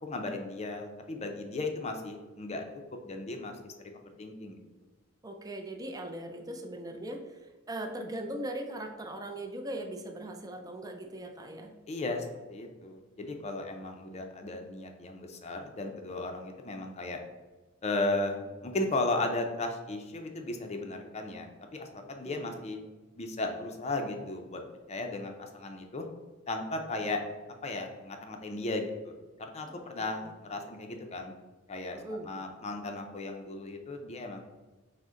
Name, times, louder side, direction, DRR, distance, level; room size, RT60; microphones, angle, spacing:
voice 1, 0.0-2.6 3.0-3.6 4.2-4.6 11.9-17.2 17.8-22.8 23.2-24.6 24.9-26.1 26.5-27.2 27.6-29.1 29.4-31.3 31.7-34.5, left 2 dB, 35° left, 4 dB, 0.5 m, -35 dB
voice 2, 5.2-11.7 13.6-13.7 22.2-22.5 29.7-30.3 31.9-32.3, right 1 dB, 20° right, 3 dB, 0.4 m, -40 dB
6.2 x 2.1 x 3.7 m, 1.2 s
head